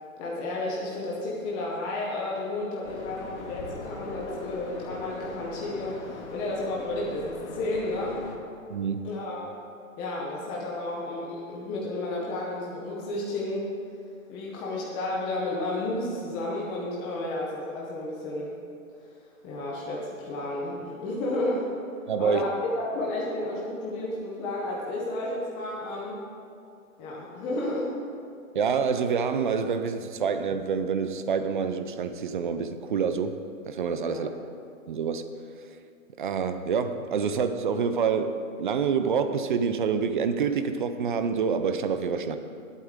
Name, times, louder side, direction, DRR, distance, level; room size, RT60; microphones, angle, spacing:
voice 1, 0.2-8.2 9.0-9.5 10.0-13.7 14.3-18.5 19.4-21.7 22.2-26.2 27.0-28.0 34.0-34.3, left 2 dB, 10° left, -4 dB, 0.7 m, -32 dB
sound 1, 2.8-8.4, left 3 dB, 55° left, 1.8 m, -41 dB
voice 2, 8.7-9.1 22.1-22.4 28.5-33.4 33.6-34.3 34.9-35.3 36.2-42.4, right 6 dB, 35° right, 9 dB, 0.6 m, -27 dB
19.5 x 8.4 x 3.7 m, 2.4 s
hypercardioid pair, 155°, 41 cm